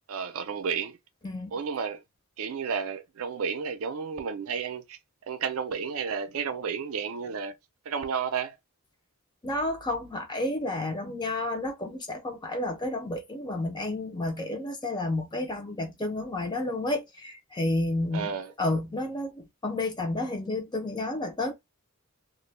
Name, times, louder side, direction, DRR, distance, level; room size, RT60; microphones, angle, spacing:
voice 1, 0.1-1.0 1.5-2.0 2.4-5.0 5.3-7.5 7.9-8.6 18.1-18.5, right 6 dB, 70° right, 0.4 m, -32 dB
voice 2, 1.2-1.6 9.4-21.5, left 2 dB, 20° left, 0.6 m, -31 dB
2.4 x 2.2 x 3.1 m
head